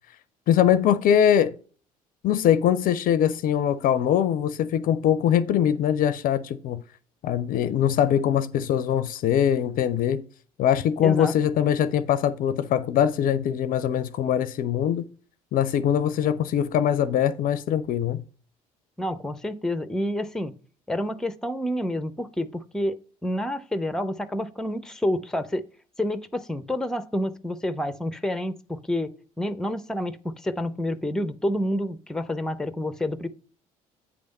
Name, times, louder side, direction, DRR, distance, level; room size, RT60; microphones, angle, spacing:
voice 1, 0.5-1.6 2.2-6.8 7.2-10.2 10.6-15.0 15.5-18.2, left 9 dB, 50° left, 0.5 m, -22 dB
voice 2, 11.0-11.3 19.0-20.5 20.9-25.6 26.0-33.3, left 1 dB, 5° left, 0.6 m, -29 dB
8.4 x 3.4 x 5.3 m
hypercardioid pair, 55°, 18 cm